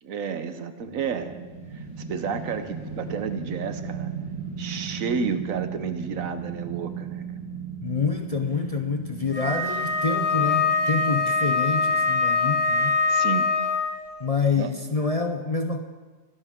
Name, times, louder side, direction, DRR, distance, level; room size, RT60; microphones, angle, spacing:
voice 1, 0.0-1.4 1.7-4.1 4.6-7.2 13.1-13.5 14.5-14.7, right 6 dB, 85° right, 9 dB, 1.3 m, -31 dB
sound 1, 0.9-13.0, right 6 dB, 20° right, 4.9 m, -37 dB
voice 2, 7.8-13.0 14.2-15.8, left 4 dB, 35° left, 6 dB, 0.6 m, -27 dB
Wind instrument woodwind instrument, 9.3-14.0, left 4 dB, 15° left, 3.7 m, -23 dB
23.0 x 11.5 x 3.7 m, 1.4 s
omnidirectional pair, 1.4 m